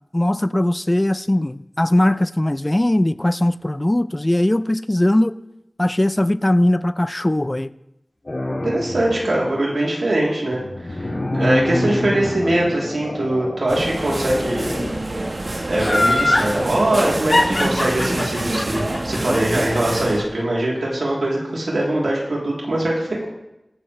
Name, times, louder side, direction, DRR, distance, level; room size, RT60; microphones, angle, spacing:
voice 1, 0.1-5.4 5.8-7.7, left 1 dB, 25° left, 0.4 m, -19 dB
sound 1, 8.3-9.3 10.5-14.9, left 1 dB, 45° left, 2.2 m, -27 dB
voice 2, 8.6-14.7 15.7-23.3, right 1 dB, 90° right, 3.3 m, -22 dB
sound 2, 13.7-20.2, right 2 dB, 55° right, 1.4 m, -26 dB
Laughter, 15.8-16.5 17.3-20.4 20.8-20.9, left 2 dB, 65° left, 3.2 m, -20 dB
22.5 x 7.7 x 3.3 m
wide cardioid pair, 45°, 0 cm